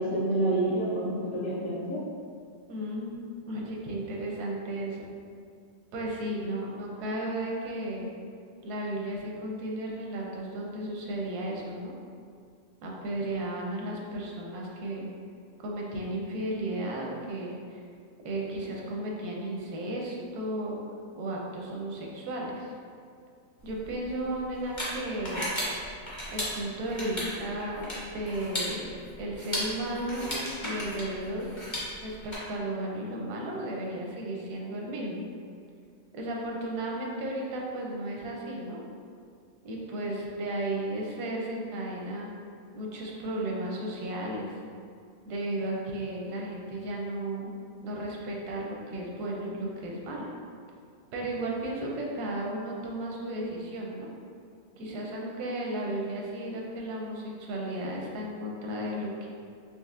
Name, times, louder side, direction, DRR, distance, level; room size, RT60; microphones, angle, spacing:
voice 1, 0.0-2.0, right 1 dB, 65° left, -7 dB, 1.3 m, -28 dB
voice 2, 2.7-3.2 3.5-5.0 5.9-8.1 8.6-11.9 12.8-15.1 15.6-17.8 18.2-20.8 21.2-22.7 23.6-25.5 26.3-28.9 29.2-31.5 32.0-35.3 36.1-38.8 39.6-42.3 42.7-44.6 45.3-47.5 47.8-50.3 51.1-54.1 54.8-59.3, right 1 dB, 85° right, -2 dB, 1.2 m, -34 dB
sound 1, 23.6-32.3, equal, 25° left, 0.6 m, -36 dB
4.3 x 3.1 x 2.4 m, 2.2 s
omnidirectional pair, 1.7 m